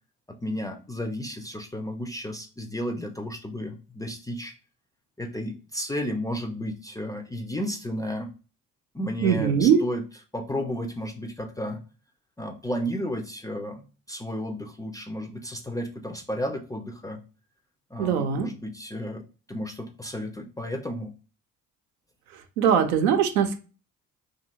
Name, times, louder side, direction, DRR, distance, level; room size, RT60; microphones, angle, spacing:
voice 1, 0.3-4.6 5.2-8.3 8.9-10.0 10.3-11.8 12.4-17.2 17.9-21.1, equal, 10° left, 4 dB, 0.4 m, -33 dB
voice 2, 9.2-9.8 18.0-18.5 22.3-23.6, right 7 dB, 80° right, 6 dB, 0.6 m, -22 dB
2.7 x 2.6 x 2.7 m, 0.35 s
hypercardioid pair, 45°, 44 cm